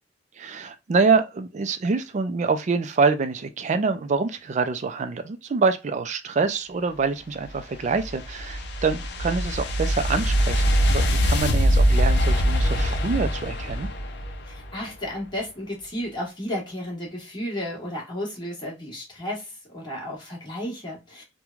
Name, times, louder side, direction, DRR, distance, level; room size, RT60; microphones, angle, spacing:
voice 1, 0.4-13.9, right 4 dB, 40° right, 0.4 m, -25 dB
sound 1, 7.5-14.7, equal, 65° left, 0.5 m, -23 dB
voice 2, 14.5-21.2, left 1 dB, 25° left, 1.3 m, -33 dB
3.1 x 2.2 x 2.3 m
head